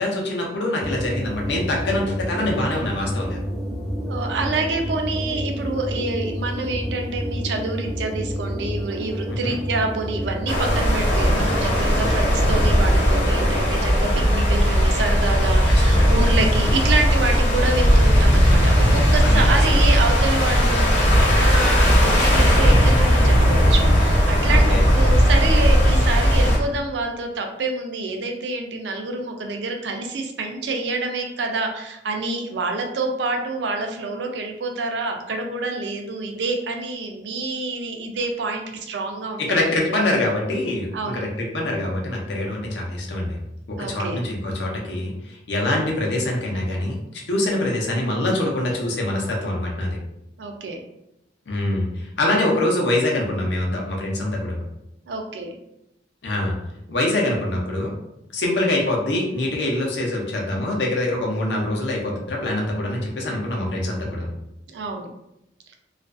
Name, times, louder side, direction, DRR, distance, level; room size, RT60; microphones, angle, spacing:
voice 1, 0.0-3.4 9.3-9.6 12.0-12.2 15.9-16.1 19.2-19.8 24.5-24.9 39.4-43.4 43.7-47.0 47.3-50.0 51.5-54.6 56.2-56.6 56.9-57.9 58.3-64.3, left 1 dB, 80° left, -1 dB, 0.6 m, -24 dB
sound 1, 0.8-13.7, equal, ahead, 0.5 m, -29 dB
voice 2, 4.1-40.0 40.9-41.3 43.8-44.2 45.6-45.7 50.4-50.8 52.3-52.4 55.1-55.5 64.7-65.1, right 3 dB, 80° right, 3 dB, 0.4 m, -27 dB
sound 2, 10.5-26.6, equal, 40° left, 0.7 m, -17 dB
2.4 x 2.2 x 2.4 m, 0.85 s
head